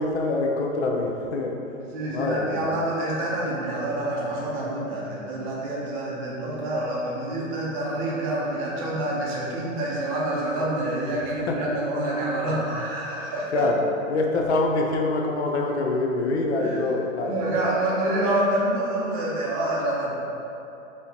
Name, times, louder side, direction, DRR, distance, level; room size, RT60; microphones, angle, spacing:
voice 1, 0.0-1.5 2.1-2.7 11.5-11.6 13.5-13.8 14.1-17.7, left 2 dB, 55° left, 0 dB, 0.5 m, -25 dB
voice 2, 1.9-13.7 16.6-16.8 17.2-20.1, right 1 dB, 25° right, -5 dB, 0.6 m, -27 dB
4.7 x 2.8 x 2.7 m, 2.9 s
hypercardioid pair, 140°, 41 cm